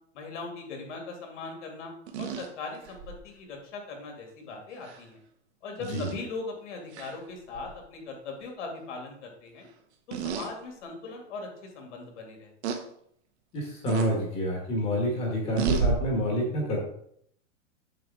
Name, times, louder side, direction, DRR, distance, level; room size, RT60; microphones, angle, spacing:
voice 1, 0.1-5.2 5.6-9.7 10.1-12.5, left 3 dB, 70° left, 1 dB, 2.6 m, -40 dB
sound 1, 2.1-3.2 4.8-5.0 5.8-6.1 6.9-7.2 7.5-7.7 10.1-10.5 11.1-11.2 12.6-12.8 13.9-14.1 15.6-15.9, right 5 dB, 60° right, 1.2 m, -30 dB
voice 2, 13.5-16.8, equal, 15° left, 0 dB, 1.3 m, -28 dB
7.6 x 6.5 x 3.6 m, 0.68 s
supercardioid pair, 180°, 38 cm